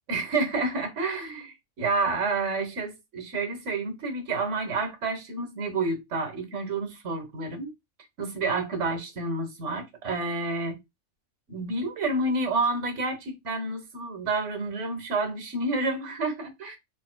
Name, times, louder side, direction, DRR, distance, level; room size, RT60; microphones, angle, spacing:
voice 1, 0.1-7.7 8.2-10.8 11.5-16.8, right 3 dB, 65° right, 1.4 m, -29 dB
4.5 x 3.6 x 2.2 m
omnidirectional pair, 1.3 m